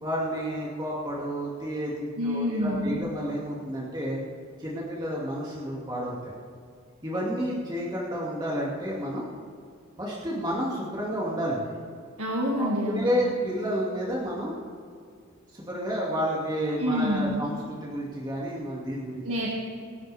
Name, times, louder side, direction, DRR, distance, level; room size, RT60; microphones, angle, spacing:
voice 1, 0.0-4.2 4.6-6.3 7.0-9.2 10.0-11.6 12.6-12.7 13.0-14.5 15.5-17.6 17.8-19.3, equal, 20° right, -5 dB, 2.3 m, -30 dB
voice 2, 2.2-3.0 12.2-13.2 16.8-17.4 19.2-19.6, equal, 75° right, -3 dB, 2.0 m, -27 dB
23.0 x 12.5 x 3.5 m, 2.2 s
head